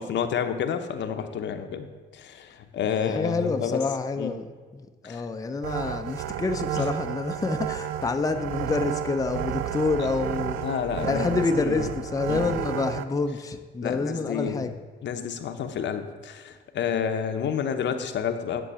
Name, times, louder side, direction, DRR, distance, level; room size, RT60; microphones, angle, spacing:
voice 1, 0.0-1.9 2.1-3.8 4.2-4.3 5.0-5.2 6.7-6.9 10.6-11.9 12.3-12.6 13.8-14.7 15.0-18.6, left 7 dB, 65° left, 7 dB, 0.8 m, -30 dB
voice 2, 2.9-4.5 4.7-10.6 11.0-14.8, left 4 dB, 15° left, 6 dB, 0.5 m, -28 dB
sound 1, 5.6-13.0, right 11 dB, 80° right, 0.4 m, -32 dB
10.0 x 3.9 x 6.8 m, 1.4 s
cardioid pair, 90°, 20 cm